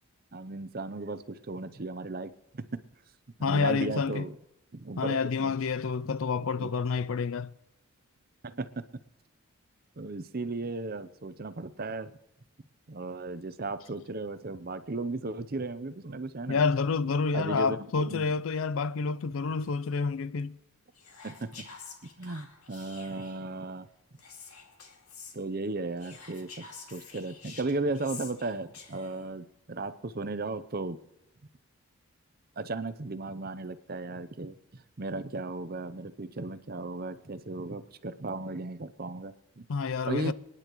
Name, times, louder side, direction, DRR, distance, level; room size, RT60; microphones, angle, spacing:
voice 1, 0.3-2.8 3.4-4.3 4.7-5.5 6.6-6.7 8.4-8.7 10.0-12.1 12.9-16.6 17.3-18.3 21.2-21.6 22.2-23.9 25.3-31.0 32.6-39.6 40.1-40.3, right 2 dB, 40° right, 0.7 m, -36 dB
voice 2, 3.4-4.3 5.0-7.5 16.5-20.6 39.7-40.3, left 5 dB, 65° left, 0.4 m, -28 dB
Whispering, 21.0-23.5 24.2-25.4 26.0-29.3, left 5 dB, 80° left, 2.3 m, -48 dB
29.0 x 9.9 x 3.1 m
head